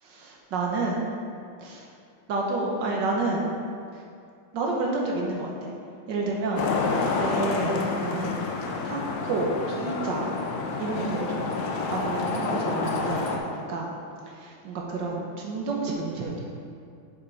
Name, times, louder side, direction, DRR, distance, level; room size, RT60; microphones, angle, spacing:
voice 1, 0.0-1.1 1.6-1.9 2.3-3.5 3.9-4.0 4.5-5.7 6.1-6.6 7.2-8.4 8.8-10.4 10.8-13.9 14.3-16.5, right 3 dB, 65° right, -1 dB, 1.4 m, -30 dB
Traffic noise roadway noise, 6.6-13.4, left 4 dB, 85° left, 1.6 m, -28 dB
6.8 x 5.5 x 4.0 m, 2.4 s
omnidirectional pair, 2.2 m